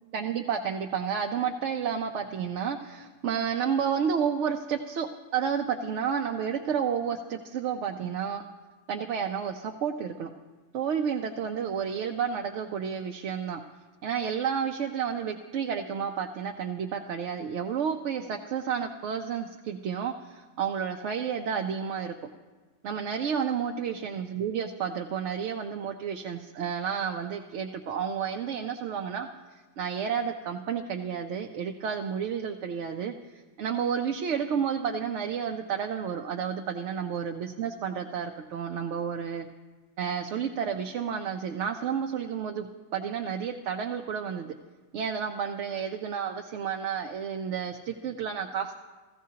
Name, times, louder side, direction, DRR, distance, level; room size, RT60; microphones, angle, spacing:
voice 1, 0.1-8.4 8.9-10.3 10.7-13.6 14.0-22.3 22.8-39.5 40.0-42.7 42.9-44.5 44.9-48.8, right 7 dB, 75° right, 4 dB, 0.9 m, -31 dB
16.0 x 14.0 x 2.8 m, 1.3 s
omnidirectional pair, 1.2 m